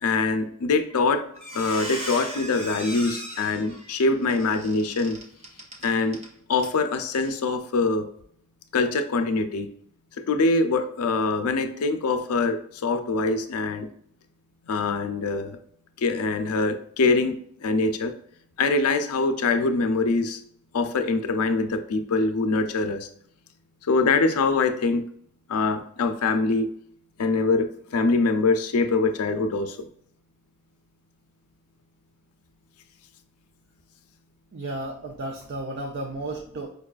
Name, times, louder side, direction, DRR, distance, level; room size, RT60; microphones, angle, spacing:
voice 1, 0.0-5.2 5.8-6.2 6.5-8.1 8.7-9.7 10.2-13.9 14.6-15.6 16.0-18.1 18.6-20.4 20.7-23.1 23.8-25.1 25.5-26.7 27.2-29.9, left 3 dB, 85° left, 8 dB, 0.5 m, -24 dB
Squeak, 0.8-1.0 1.3-6.3 6.6-6.8 7.2-7.3, equal, 30° right, 0.9 m, -37 dB
voice 2, 34.5-36.7, right 2 dB, 50° right, 2 dB, 0.5 m, -33 dB
5.2 x 2.3 x 2.3 m, 0.65 s
head